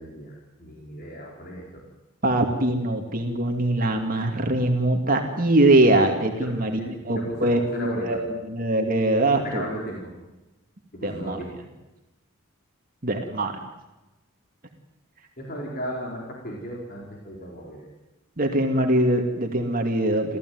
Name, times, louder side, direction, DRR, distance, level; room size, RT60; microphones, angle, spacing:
voice 1, 0.0-1.8 6.3-6.5 6.8-8.2 9.4-10.1 10.9-11.5 15.4-17.9, equal, 45° left, -2 dB, 4.6 m, -36 dB
voice 2, 2.2-6.8 7.1-8.2 8.5-9.6 11.0-11.4 13.0-13.5 18.4-20.4, right 1 dB, 40° right, 3 dB, 2.4 m, -22 dB
28.5 x 15.5 x 9.6 m, 1.0 s
head